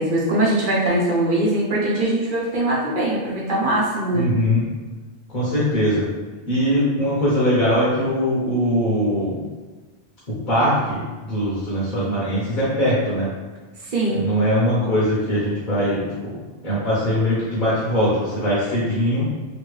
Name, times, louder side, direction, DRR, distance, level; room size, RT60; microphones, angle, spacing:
voice 1, 0.0-4.3 13.8-14.4, right 1 dB, 55° right, -5 dB, 0.9 m, -21 dB
voice 2, 4.1-4.7 5.3-6.0 6.5-9.4 10.5-13.3 14.1-19.2, equal, 55° left, -7 dB, 1.0 m, -21 dB
3.0 x 2.7 x 3.1 m, 1.3 s
omnidirectional pair, 1.0 m